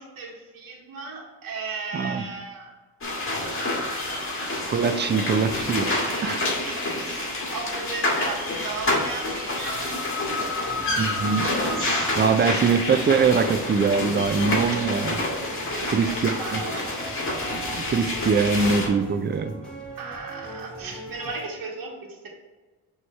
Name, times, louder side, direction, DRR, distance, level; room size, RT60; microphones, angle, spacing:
voice 1, 0.0-2.7 3.1-4.2 5.8-10.0 12.4-12.6 12.9-13.5 15.7-16.9 20.0-22.3, right 4 dB, 65° right, -1 dB, 1.3 m, -37 dB
voice 2, 1.9-2.2 4.7-5.9 6.2-6.4 11.0-11.5 12.2-15.2 15.9-16.6 17.8-19.6, right 5 dB, 30° right, 10 dB, 0.5 m, -23 dB
sound 1, 3.0-18.9, left 2 dB, 35° left, 1.8 m, -28 dB
sound 2, 10.6-21.5, right 2 dB, 5° left, 1.4 m, -40 dB
6.1 x 3.1 x 5.5 m, 1.3 s
cardioid pair, 95°, 37 cm